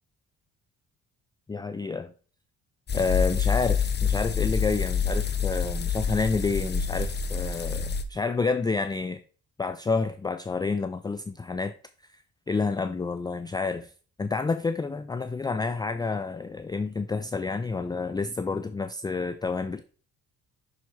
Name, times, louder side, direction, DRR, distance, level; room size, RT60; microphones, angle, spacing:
voice 1, 1.5-2.1 2.9-9.2 9.6-11.7 12.5-13.9 14.2-19.8, left 4 dB, 15° left, 0.4 m, -29 dB
sound 1, 2.9-8.0, left 6 dB, 35° left, 0.8 m, -27 dB
5.9 x 4.2 x 4.5 m
cardioid pair, 90°, 30 cm